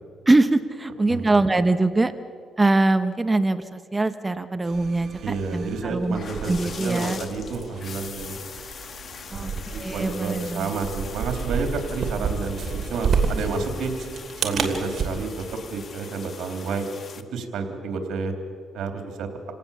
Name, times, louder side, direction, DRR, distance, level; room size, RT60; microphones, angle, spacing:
voice 1, 0.3-2.1 2.6-6.2 6.5-7.2 9.3-9.5 9.8-10.7, right 2 dB, 20° right, 11 dB, 1.1 m, -22 dB
sound 1, 4.6-15.1, right 5 dB, 55° right, 2.8 m, -31 dB
voice 2, 5.2-8.3 9.3-13.9 14.4-16.9 17.1-18.3 18.7-19.3, right 4 dB, 75° right, 5 dB, 3.4 m, -30 dB
sound 2, 6.1-17.2, left 6 dB, 50° left, 1.6 m, -41 dB
28.0 x 18.0 x 7.2 m, 2.1 s
cardioid pair, 90°, 0 cm